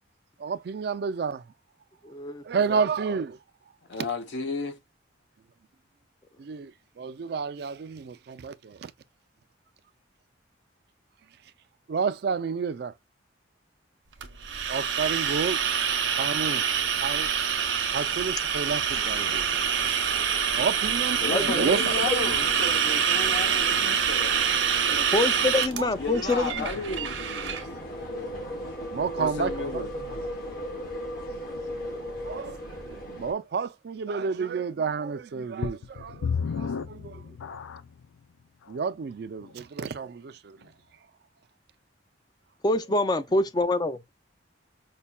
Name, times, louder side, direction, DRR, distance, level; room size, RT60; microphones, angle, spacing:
voice 1, 0.4-1.5 2.4-3.4 4.0-4.1 6.4-8.9 11.9-12.9 14.7-22.0 24.9-25.1 25.5-25.9 28.9-30.3 31.9-37.4 38.7-40.7 42.8-42.9 43.6-43.7, right 5 dB, 55° right, 0.3 m, -31 dB
voice 2, 2.0-2.4 21.3-21.5 25.1-26.7 42.6-44.1, left 2 dB, 20° left, 0.4 m, -25 dB
voice 3, 3.9-4.8 21.2-25.1 26.0-27.6 29.2-29.9, left 3 dB, 65° left, 0.8 m, -33 dB
sound 1, 14.2-27.6, right 7 dB, 75° right, 0.7 m, -26 dB
sound 2, 14.4-33.3, equal, 50° left, 1.3 m, -39 dB
sound 3, 35.6-38.0 38.7-38.8 39.4-39.5, left 6 dB, 90° left, 0.4 m, -32 dB
5.4 x 2.2 x 2.2 m
head